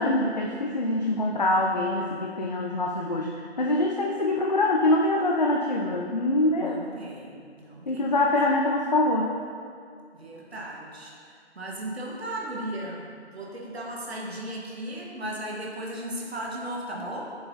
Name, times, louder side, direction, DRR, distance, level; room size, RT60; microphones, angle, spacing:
voice 1, 0.0-6.8 7.9-9.3, left 2 dB, 40° left, -1 dB, 0.4 m, -24 dB
voice 2, 6.6-8.2 10.1-11.1 11.5-17.3, right 1 dB, 60° right, -3 dB, 1.5 m, -36 dB
7.7 x 5.8 x 2.7 m, 2.3 s
figure-of-eight pair, 150°, 34 cm